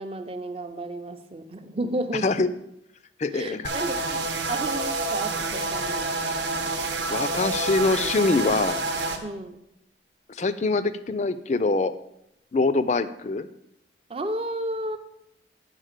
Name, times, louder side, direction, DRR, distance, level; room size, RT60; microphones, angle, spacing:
voice 1, 0.0-2.3 3.3-6.4 9.2-9.6 14.1-15.0, right 1 dB, 30° right, 8 dB, 0.5 m, -32 dB
voice 2, 3.2-3.7 7.1-8.8 10.3-11.9 12.5-13.5, left 3 dB, 40° left, 13 dB, 0.4 m, -24 dB
sound 1, 3.6-9.2, right 3 dB, 75° right, 0.9 m, -28 dB
9.0 x 3.8 x 6.5 m, 0.81 s
head